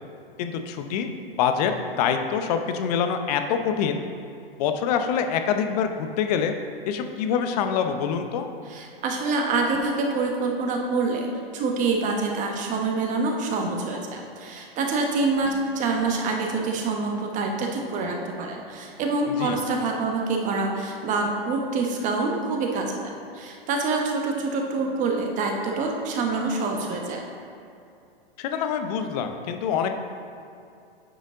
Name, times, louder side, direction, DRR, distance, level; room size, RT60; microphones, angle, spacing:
voice 1, 0.4-1.1 1.4-4.0 4.6-6.5 6.9-8.5 19.4-19.6 28.4-29.9, left 7 dB, 40° left, 7 dB, 0.7 m, -25 dB
voice 2, 8.7-11.3 11.5-23.0 23.3-27.2, right 3 dB, 25° right, 2 dB, 1.0 m, -26 dB
9.0 x 5.2 x 3.8 m, 2.5 s
hypercardioid pair, 125°, 30 cm